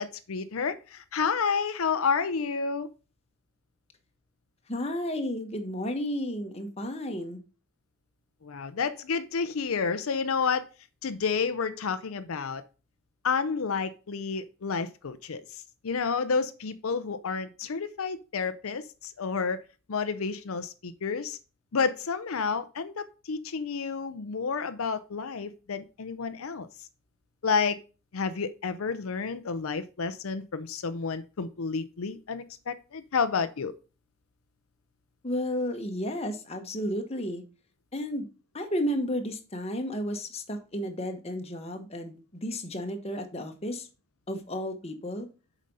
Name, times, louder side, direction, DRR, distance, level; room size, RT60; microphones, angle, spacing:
voice 1, 0.0-2.9 8.4-10.6 11.0-12.6 13.2-19.6 19.9-21.4 21.7-26.7 27.4-27.8 28.1-33.7, left 5 dB, 80° left, 11 dB, 0.6 m, -30 dB
voice 2, 4.7-7.4 35.2-37.4 37.9-38.3 38.5-42.1 42.4-43.9 44.3-45.3, equal, 30° left, 5 dB, 1.2 m, -32 dB
7.5 x 5.1 x 5.4 m, 0.33 s
head